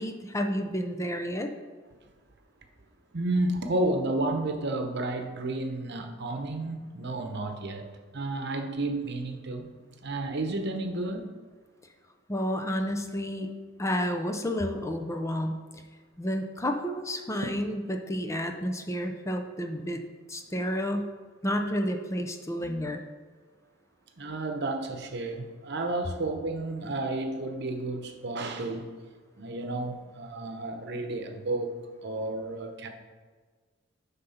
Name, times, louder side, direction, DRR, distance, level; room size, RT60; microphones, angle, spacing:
voice 1, 0.0-1.5 12.3-13.5 13.8-15.6 16.2-20.0 20.3-21.1 21.4-23.0, equal, 15° left, 0.6 m, -30 dB
voice 2, 3.1-9.7 10.0-11.3 17.4-17.5 22.6-22.9 24.2-28.9 29.4-32.9, right 2 dB, 60° right, 0.9 m, -32 dB
9.4 x 3.9 x 5.6 m
head